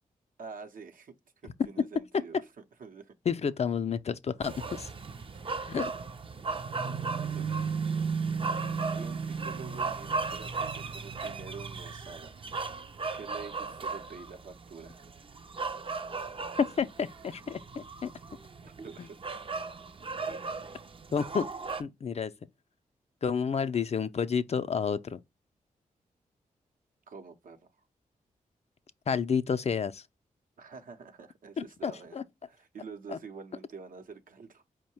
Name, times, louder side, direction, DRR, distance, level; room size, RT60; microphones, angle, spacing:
voice 1, 0.4-1.1 1.4-2.4 2.8-3.1 5.3-5.4 7.1-7.6 8.9-12.3 13.1-15.0 18.6-19.2 23.7-23.9 27.1-27.7 30.6-34.6, right 5 dB, 70° right, 0.7 m, -47 dB
voice 2, 3.3-4.9 5.6-5.9 16.6-18.1 19.0-19.1 21.1-21.5 21.8-22.3 23.2-25.2 29.1-30.0 31.6-32.2 33.1-33.2, left 6 dB, 45° left, 0.4 m, -30 dB
sound 1, 4.4-21.8, right 4 dB, 35° right, 0.5 m, -35 dB
4.6 x 2.1 x 4.3 m
cardioid pair, 50°, 15 cm